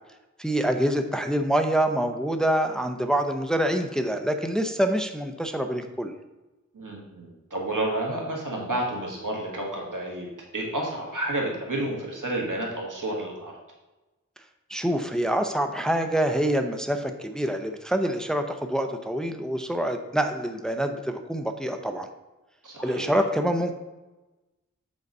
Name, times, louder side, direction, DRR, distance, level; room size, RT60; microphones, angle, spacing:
voice 1, 0.4-6.1 14.7-22.1 22.8-23.7, right 1 dB, ahead, 6 dB, 0.7 m, -26 dB
voice 2, 6.7-10.3 10.5-13.5 22.6-23.1, right 1 dB, 90° right, -2 dB, 1.8 m, -30 dB
8.0 x 4.0 x 5.3 m, 1.1 s
wide cardioid pair, 40°, 31 cm